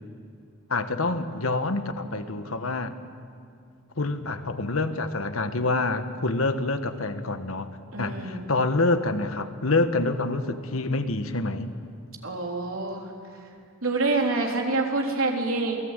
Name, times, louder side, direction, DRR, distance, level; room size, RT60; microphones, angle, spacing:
voice 1, 0.7-2.9 4.0-7.7 8.0-11.7, left 2 dB, 85° left, 9 dB, 1.5 m, -27 dB
voice 2, 7.9-8.5 12.2-13.1 13.8-15.8, right 3 dB, 80° right, 1 dB, 3.6 m, -26 dB
28.0 x 18.5 x 9.0 m, 2.4 s
head